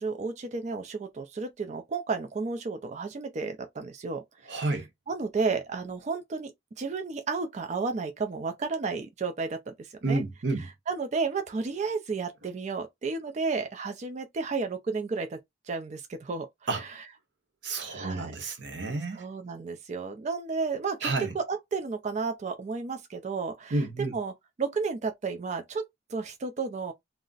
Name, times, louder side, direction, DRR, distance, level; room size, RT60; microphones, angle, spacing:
voice 1, 0.0-4.7 5.1-6.5 6.8-10.2 10.9-15.4 15.6-16.5 16.7-17.0 17.8-18.3 19.1-24.3 24.6-25.8 26.1-26.9, right 4 dB, 40° right, 0.4 m, -32 dB
voice 2, 4.5-4.9 10.0-10.7 16.7-16.8 17.6-19.2 21.0-21.3 23.7-24.1, right 3 dB, 65° right, 0.8 m, -30 dB
2.4 x 2.0 x 3.8 m
head